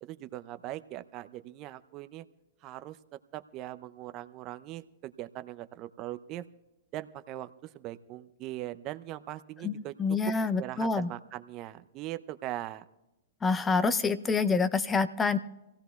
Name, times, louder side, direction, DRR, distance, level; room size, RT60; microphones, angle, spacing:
voice 1, 0.0-2.2 2.6-3.0 3.3-6.4 6.9-9.9 10.6-12.8, right 14 dB, 40° right, 12 dB, 0.5 m, -40 dB
voice 2, 9.6-11.1 13.4-15.4, left 4 dB, 15° left, 13 dB, 0.5 m, -27 dB
26.0 x 16.0 x 2.3 m, 0.98 s
hypercardioid pair, 110°, 0 cm